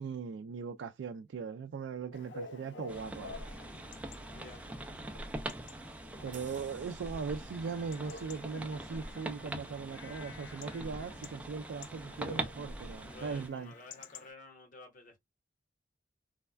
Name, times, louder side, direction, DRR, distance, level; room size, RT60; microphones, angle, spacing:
voice 1, 0.0-3.3 6.2-13.7, right 5 dB, 85° right, 0.3 m, -39 dB
Chatter / Bark / Livestock farm animals working animals, 2.1-14.3, left 3 dB, 70° left, 0.5 m, -51 dB
sound 1, 2.9-13.5, right 1 dB, 10° right, 0.4 m, -43 dB
voice 2, 4.3-4.7 13.0-15.2, left 2 dB, 50° left, 1.4 m, -52 dB
sound 2, 6.3-11.3 11.7-11.9, right 6 dB, 45° right, 0.9 m, -61 dB
3.3 x 2.1 x 2.2 m
head